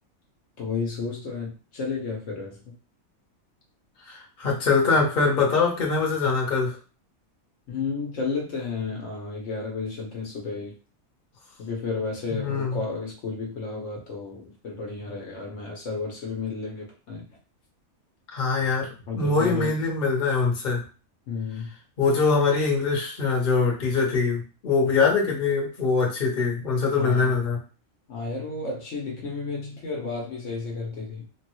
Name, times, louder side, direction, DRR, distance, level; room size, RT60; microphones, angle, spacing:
voice 1, 0.6-2.7 7.7-10.8 11.6-17.3 19.1-19.8 21.3-21.7 26.9-27.4 28.1-31.2, left 4 dB, 65° left, -1 dB, 1.1 m, -32 dB
voice 2, 4.1-6.8 12.4-12.8 18.3-18.9 19.1-20.8 22.0-27.6, left 4 dB, 40° left, -2 dB, 1.0 m, -23 dB
3.4 x 2.2 x 3.0 m, 0.35 s
omnidirectional pair, 1.4 m